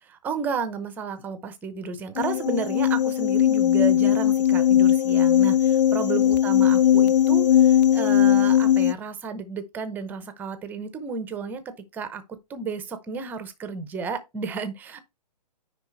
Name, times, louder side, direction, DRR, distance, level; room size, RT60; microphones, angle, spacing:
voice 1, 0.0-11.6 11.9-12.2 12.5-15.0, right 5 dB, 10° right, 0.7 m, -32 dB
sound 1, 2.2-8.9, left 10 dB, 80° left, 0.5 m, -19 dB
9.8 x 3.4 x 4.5 m
hypercardioid pair, 160°, 21 cm